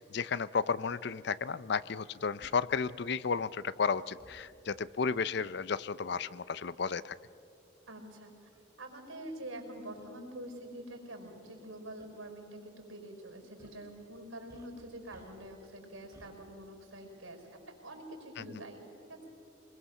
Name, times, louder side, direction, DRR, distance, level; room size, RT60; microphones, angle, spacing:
voice 1, 0.0-7.1 18.4-18.5, left 5 dB, 55° left, 18 dB, 0.5 m, -33 dB
sound 1, 0.9-1.0 2.4-2.6 4.2-4.5 6.2-6.4 7.3-7.4 8.2-8.3 8.5-8.7 10.0-10.1 11.5-11.7 12.0-12.1 13.6-13.9 14.5-15.6 16.1-16.3, right 1 dB, 15° right, 2.8 m, -59 dB
voice 2, 7.9-8.5 8.8-19.2, right 1 dB, 90° right, 3 dB, 5.2 m, -46 dB
23.5 x 21.5 x 7.2 m, 2.6 s
head